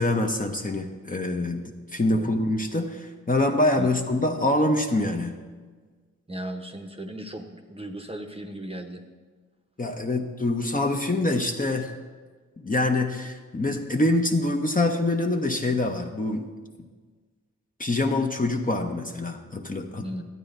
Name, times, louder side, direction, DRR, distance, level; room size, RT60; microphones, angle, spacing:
voice 1, 0.0-5.4 9.8-11.9 12.6-16.4 17.8-20.1, left 2 dB, 25° left, 3 dB, 0.8 m, -25 dB
voice 2, 6.3-9.0 20.0-20.2, right 1 dB, 20° right, 5 dB, 0.8 m, -36 dB
12.0 x 8.7 x 2.6 m, 1.4 s
cardioid pair, 50°, 31 cm